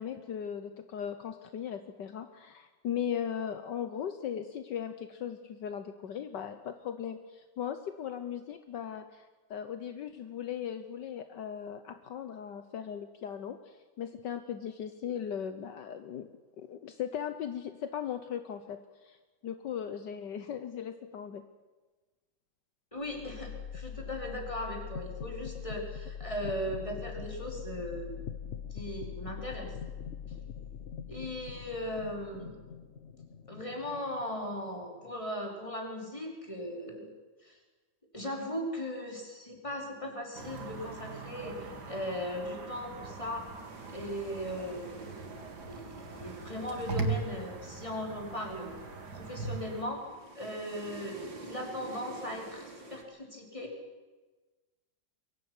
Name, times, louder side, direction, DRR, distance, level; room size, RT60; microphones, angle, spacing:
voice 1, 0.0-16.3 16.6-19.2 19.4-21.4, left 8 dB, 70° left, 9 dB, 1.6 m, -38 dB
voice 2, 22.9-28.2 28.7-29.8 31.1-32.6 33.5-37.1 37.4-37.6 38.1-43.5 43.9-45.2 45.7-48.7 49.1-50.0 50.3-53.7, left 1 dB, 15° left, 1 dB, 4.6 m, -38 dB
sound 1, 23.0-35.0, left 8 dB, 50° left, 0.9 m, -43 dB
sound 2, 40.3-49.8, right 4 dB, 65° right, 2.9 m, -40 dB
sound 3, 43.2-53.0, right 2 dB, 80° right, 3.8 m, -49 dB
23.5 x 17.0 x 9.6 m, 1.2 s
omnidirectional pair, 2.0 m